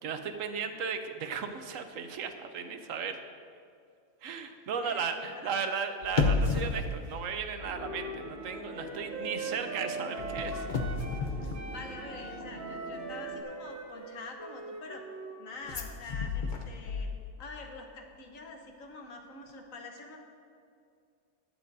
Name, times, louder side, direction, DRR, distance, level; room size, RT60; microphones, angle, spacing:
voice 1, 0.0-3.2 4.2-10.6, right 6 dB, 75° right, 7 dB, 1.1 m, -35 dB
voice 2, 4.8-5.5 11.7-15.0 15.4-17.1 17.4-20.3, left 3 dB, 70° left, 3 dB, 1.5 m, -46 dB
sound 1, 6.0-8.3 8.6-8.9 10.2-12.4 15.7-17.6 17.8-17.9, left 4 dB, 45° left, 0.8 m, -32 dB
sound 2, 7.6-13.4, right 2 dB, 40° right, 1.5 m, -45 dB
Wind instrument woodwind instrument, 7.7-11.3 11.5-15.4, right 2 dB, 15° right, 0.7 m, -41 dB
20.0 x 7.5 x 2.6 m, 2.4 s
omnidirectional pair, 1.4 m